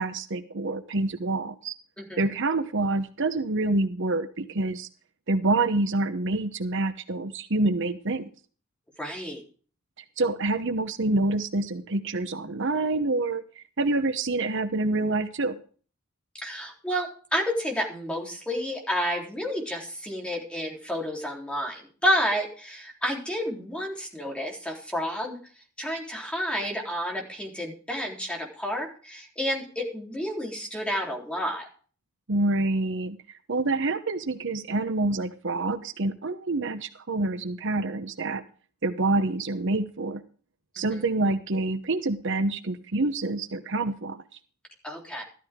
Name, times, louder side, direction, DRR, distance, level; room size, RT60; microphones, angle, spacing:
voice 1, 0.0-1.7 2.2-4.9 5.3-8.2 10.2-15.6 32.3-33.2 33.5-38.4 38.8-40.2 40.7-44.2, right 2 dB, 60° right, 10 dB, 1.0 m, -27 dB
voice 2, 2.0-2.3 9.0-9.4 16.4-25.4 25.8-31.7 40.8-41.0 44.8-45.2, equal, 5° left, -1 dB, 3.7 m, -30 dB
14.0 x 13.0 x 3.7 m, 0.41 s
head